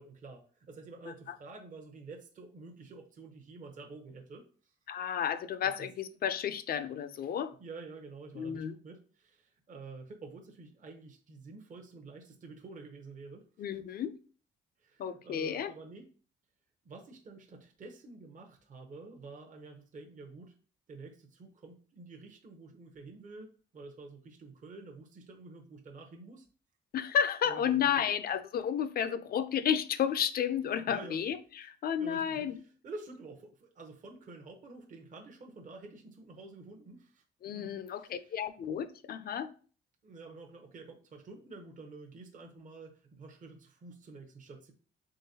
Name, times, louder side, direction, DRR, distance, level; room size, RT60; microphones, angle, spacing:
voice 1, 0.0-4.7 5.6-5.7 7.6-13.5 14.8-16.1 16.8-20.6 20.9-26.5 27.4-27.9 30.8-31.2 31.9-37.2 37.5-38.4 40.0-44.7, right 3 dB, 40° right, 0.7 m, -49 dB
voice 2, 4.9-7.5 8.4-8.7 13.6-14.1 15.0-15.7 26.9-32.6 37.4-39.5, left 8 dB, 50° left, 0.4 m, -32 dB
3.7 x 3.4 x 2.7 m
cardioid pair, 90°, 20 cm